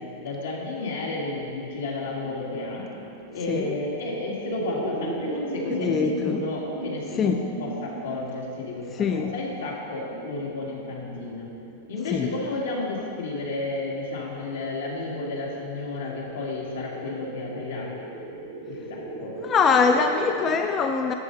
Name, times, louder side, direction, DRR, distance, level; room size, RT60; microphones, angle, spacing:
voice 1, 0.2-2.9 3.3-11.5 11.9-17.9 18.6-19.3, left 2 dB, 85° left, -4 dB, 2.2 m, -32 dB
sound 1, 0.8-20.6, right 2 dB, 80° right, 2.3 m, -38 dB
voice 2, 5.7-6.4 7.2-7.4 9.0-9.3 12.1-12.3 19.4-21.1, left 5 dB, 30° left, 5 dB, 0.5 m, -23 dB
11.5 x 6.6 x 4.0 m, 2.8 s
hypercardioid pair, 120°, 0 cm